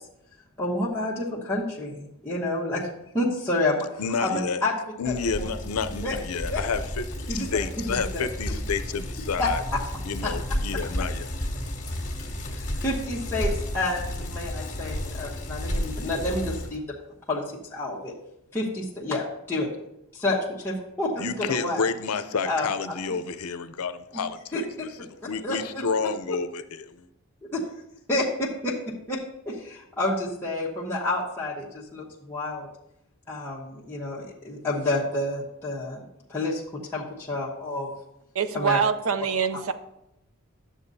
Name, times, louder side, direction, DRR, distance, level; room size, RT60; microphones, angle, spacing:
voice 1, 0.6-2.9 3.1-3.9 4.2-4.8 5.0-5.5 6.0-6.1 6.5-6.6 7.3-8.3 9.4-9.5 10.2-10.3 12.5-17.0 17.3-18.1 18.5-19.7 20.1-21.8 22.5-22.7 24.1-24.2 24.5-24.9 25.4-26.1 27.5-27.6 28.1-28.8 29.1-29.2 29.4-32.7 33.3-36.0 36.3-37.9 38.5-38.8, left 2 dB, 10° left, -7 dB, 1.0 m, -29 dB
voice 2, 4.0-4.6 5.0-9.6 10.0-11.3 21.2-24.9 25.2-27.1, left 5 dB, 85° left, 11 dB, 0.6 m, -30 dB
Bicycle, 5.1-16.7, left 1 dB, 35° left, 1.5 m, -32 dB
voice 3, 38.3-39.7, right 6 dB, 70° right, 11 dB, 0.6 m, -25 dB
11.5 x 7.3 x 2.7 m, 0.84 s
head